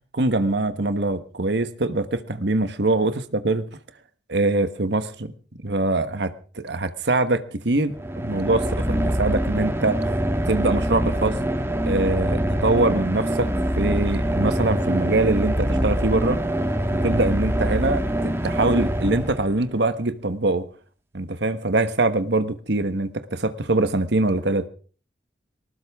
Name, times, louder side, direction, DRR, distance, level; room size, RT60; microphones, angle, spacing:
voice 1, 0.1-3.6 4.3-5.3 5.6-10.1 10.5-11.4 11.9-13.5 13.7-16.4 16.9-20.7 21.1-24.7, right 2 dB, 65° right, 11 dB, 1.3 m, -23 dB
sound 1, 7.9-19.8, right 1 dB, 15° right, 1.6 m, -24 dB
sound 2, 13.3-19.4, equal, 15° left, 2.0 m, -41 dB
19.5 x 19.0 x 3.6 m, 0.40 s
head